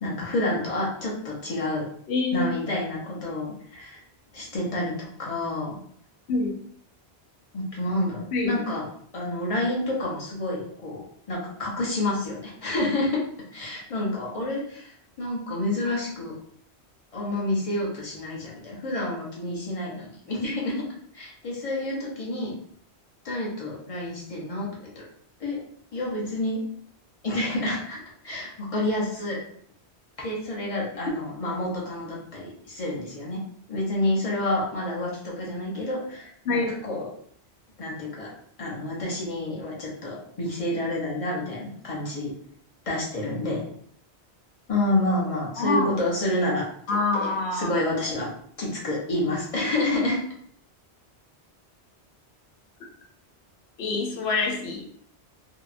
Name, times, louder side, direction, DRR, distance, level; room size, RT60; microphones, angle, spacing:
voice 1, 0.0-1.9 2.3-4.0 4.3-5.8 7.5-8.9 9.1-13.2 13.5-16.3 17.1-20.8 21.1-22.5 23.2-24.7 25.0-25.1 25.4-25.6 25.9-26.6 27.2-28.0 28.2-29.4 30.2-33.4 33.7-37.1 37.8-38.3 38.6-42.3 42.9-43.6 44.7-48.3 48.6-50.2, left 1 dB, 35° left, -4 dB, 0.7 m, -29 dB
voice 2, 2.1-2.5 6.3-6.6 8.3-8.6 36.4-36.7 45.6-45.9 46.9-47.7 53.8-54.8, left 3 dB, 75° left, 1 dB, 0.9 m, -25 dB
2.7 x 2.1 x 2.5 m, 0.63 s
omnidirectional pair, 1.1 m